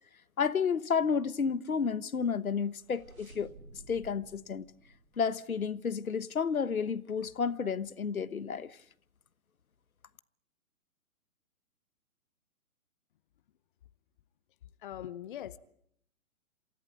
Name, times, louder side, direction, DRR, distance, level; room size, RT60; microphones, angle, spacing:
voice 1, 0.4-3.5 3.9-4.6 5.2-8.8, left 6 dB, 75° left, 1.3 m, -31 dB
sound 1, 2.4-5.9, right 3 dB, 75° right, 3.7 m, -55 dB
voice 2, 14.8-15.6, left 11 dB, 35° left, 0.8 m, -41 dB
28.0 x 14.5 x 9.5 m
figure-of-eight pair, 130°, 42 cm